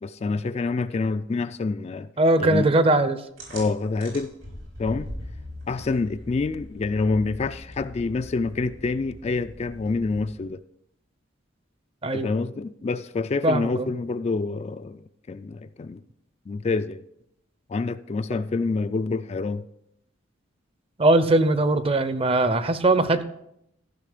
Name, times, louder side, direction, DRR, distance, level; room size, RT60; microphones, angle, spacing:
voice 1, 0.0-2.1 2.4-2.7 3.5-4.3 4.8-5.1 5.7-10.6 12.1-16.0 16.5-17.0 17.7-19.6, left 3 dB, 35° left, 0.3 m, -27 dB
voice 2, 2.2-3.2 12.0-12.3 13.4-13.7 21.0-23.2, right 2 dB, 30° right, 0.6 m, -20 dB
sound 1, 3.4-10.5, equal, 85° right, 4.8 m, -41 dB
14.5 x 5.9 x 5.0 m
head